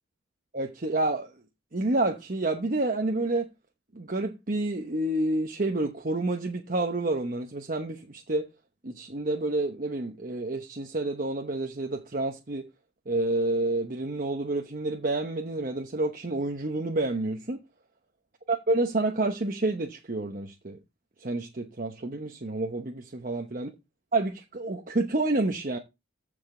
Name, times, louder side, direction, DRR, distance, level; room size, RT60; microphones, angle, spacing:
voice 1, 0.5-1.3 1.7-3.5 3.9-8.5 8.8-12.7 13.1-17.6 18.5-20.8 21.2-23.7 24.1-25.8, right 2 dB, 45° right, 0.9 m, -29 dB
14.5 x 5.2 x 3.8 m
head